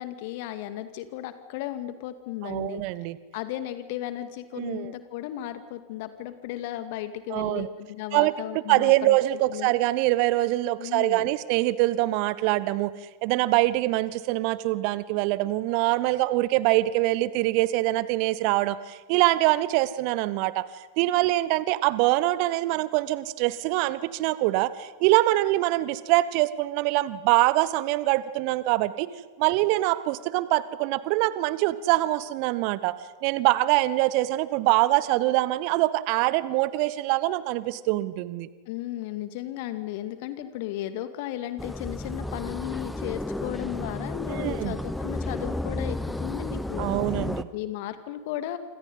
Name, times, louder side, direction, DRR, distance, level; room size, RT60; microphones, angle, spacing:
voice 1, 0.0-2.8 3.3-9.2 9.5-9.7 10.8-11.3 38.7-46.9 47.5-48.6, left 13 dB, 50° left, 10 dB, 2.2 m, -35 dB
voice 2, 2.4-3.2 4.6-4.9 7.3-7.7 8.1-12.9 13.2-20.7 21.0-29.1 29.4-38.5 44.3-44.8 46.8-47.5, right 17 dB, 45° right, 17 dB, 1.1 m, -24 dB
sound 1, 41.6-47.4, left 1 dB, 5° left, 1.0 m, -32 dB
28.5 x 26.5 x 5.6 m, 1.3 s
figure-of-eight pair, 90°, 0 cm